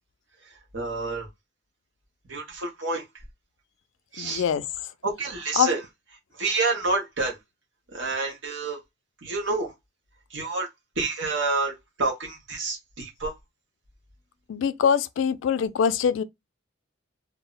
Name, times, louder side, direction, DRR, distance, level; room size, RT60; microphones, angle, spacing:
voice 1, 0.7-1.3 2.3-3.0 4.1-4.4 5.0-5.8 6.4-7.4 7.9-8.8 9.2-9.7 10.3-10.7 11.0-13.3, right 3 dB, 75° right, 0.8 m, -28 dB
voice 2, 4.2-4.6 5.6-5.7 14.5-16.2, left 7 dB, 80° left, 0.3 m, -23 dB
2.1 x 2.1 x 3.7 m
head